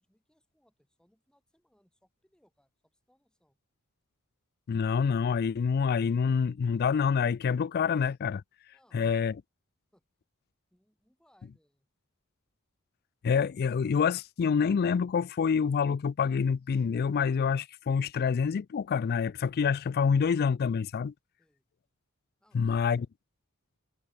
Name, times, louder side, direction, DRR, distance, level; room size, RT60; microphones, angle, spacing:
voice 1, 0.0-3.6 8.7-9.2 9.9-10.0 10.7-11.9 21.4-21.6 22.4-23.0, equal, 5° left, 6.1 m, -69 dB
voice 2, 4.7-8.4 8.9-9.4 13.2-21.1 22.5-23.1, left 6 dB, 45° left, 0.3 m, -27 dB
head